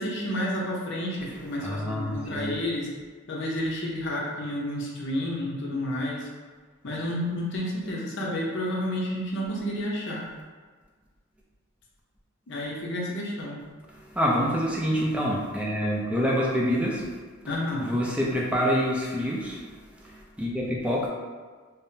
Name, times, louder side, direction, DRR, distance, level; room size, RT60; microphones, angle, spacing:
voice 1, 0.0-2.9 3.3-6.3 6.8-10.2 12.5-13.6 17.4-17.9, left 1 dB, 60° left, -3 dB, 0.7 m, -30 dB
voice 2, 1.6-2.5 14.1-17.1 17.8-19.6 20.0-21.1, equal, 5° right, -4 dB, 0.5 m, -26 dB
5.3 x 2.1 x 2.7 m, 1.5 s
head